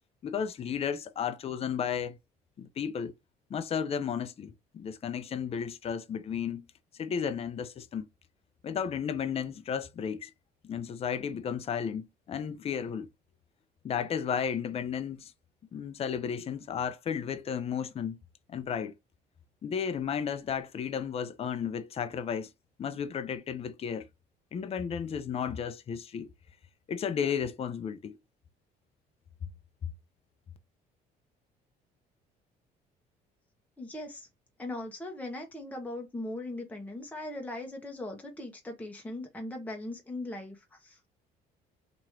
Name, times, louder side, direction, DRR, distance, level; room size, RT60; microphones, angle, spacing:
voice 1, 0.2-2.2 2.6-3.1 3.5-6.7 7.0-8.1 8.6-10.3 10.6-13.1 13.8-15.3 15.7-18.2 18.5-18.9 19.6-22.5 22.8-24.1 24.5-26.3 26.9-28.2, left 7 dB, 35° left, 0.5 m, -33 dB
voice 2, 33.8-34.3 34.6-41.1, left 1 dB, 10° left, 0.9 m, -39 dB
3.0 x 2.6 x 4.4 m
cardioid pair, 110°, 17 cm